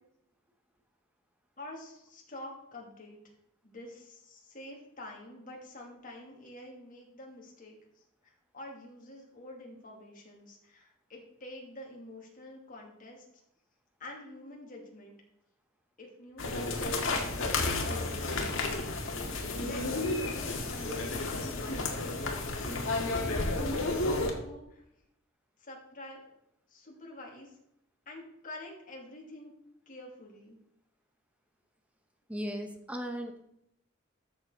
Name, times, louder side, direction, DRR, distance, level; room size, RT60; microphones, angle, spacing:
voice 1, 1.6-3.2 3.6-7.8 8.2-13.2 14.0-15.2 16.0-19.1 19.6-22.5 22.9-24.8 25.6-26.2 26.7-27.5 28.1-29.5 29.9-30.6, left 1 dB, 40° left, -1 dB, 2.8 m, -48 dB
sound 1, 16.4-24.3, left 2 dB, 70° left, 1.9 m, -32 dB
voice 2, 32.3-33.4, equal, 5° right, 5 dB, 1.1 m, -37 dB
13.0 x 7.0 x 4.0 m, 0.79 s
head